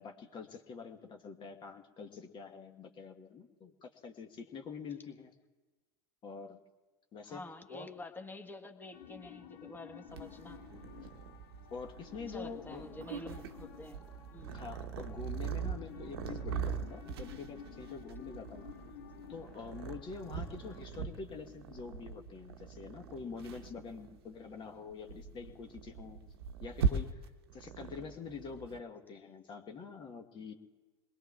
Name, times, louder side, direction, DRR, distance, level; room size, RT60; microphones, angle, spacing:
voice 1, 0.0-5.3 6.2-6.6 7.1-7.4 7.7-7.9 11.7-12.9 14.5-18.7 19.3-26.2 26.6-27.3 27.5-30.5, left 5 dB, 35° left, 3 dB, 1.2 m, -46 dB
voice 2, 7.2-10.6 12.3-14.0 14.3-14.6 20.5-20.6 27.8-27.9, left 2 dB, 15° left, 6 dB, 1.3 m, -48 dB
sound 1, 8.9-20.8, left 10 dB, 70° left, 1.0 m, -53 dB
Purr, 10.1-28.8, right 6 dB, 75° right, 0.9 m, -41 dB
27.5 x 20.5 x 2.4 m, 1.3 s
hypercardioid pair, 85°, 13 cm